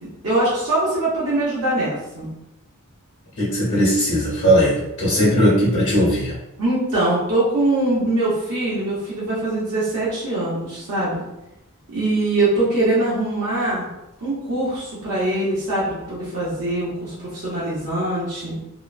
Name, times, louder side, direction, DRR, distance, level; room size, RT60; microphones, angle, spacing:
voice 1, 0.2-2.3 6.6-11.2 11.9-13.9 14.2-18.5, right 2 dB, 70° right, -9 dB, 0.9 m, -22 dB
voice 2, 3.4-6.3, equal, 60° left, -7 dB, 0.9 m, -18 dB
2.9 x 2.2 x 2.4 m, 0.91 s
head